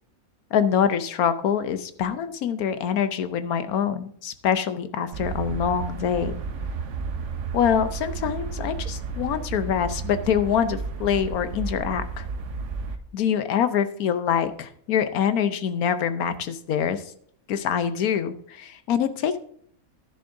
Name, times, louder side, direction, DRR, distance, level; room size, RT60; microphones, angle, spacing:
voice 1, 0.5-6.4 7.5-12.2 13.1-17.0 17.5-19.4, left 8 dB, 90° left, 11 dB, 1.3 m, -25 dB
sound 1, 5.1-13.0, right 4 dB, 60° right, 1.1 m, -32 dB
12.0 x 10.5 x 2.6 m, 0.62 s
omnidirectional pair, 1.5 m